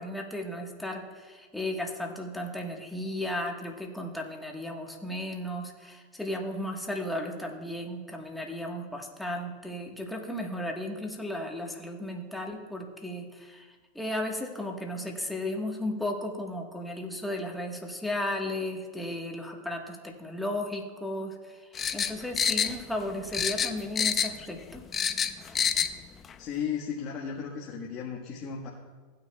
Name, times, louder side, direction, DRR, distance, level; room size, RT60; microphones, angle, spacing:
voice 1, 0.0-24.8, left 1 dB, 5° left, 0 dB, 1.4 m, -35 dB
sound 1, 21.7-23.1 23.3-24.5 24.7-25.9 26.2-26.3, left 7 dB, 25° left, 0.5 m, -27 dB
voice 2, 26.4-28.7, left 7 dB, 45° left, -2 dB, 1.4 m, -35 dB
16.0 x 9.4 x 2.3 m, 1.4 s
hypercardioid pair, 115°, 0 cm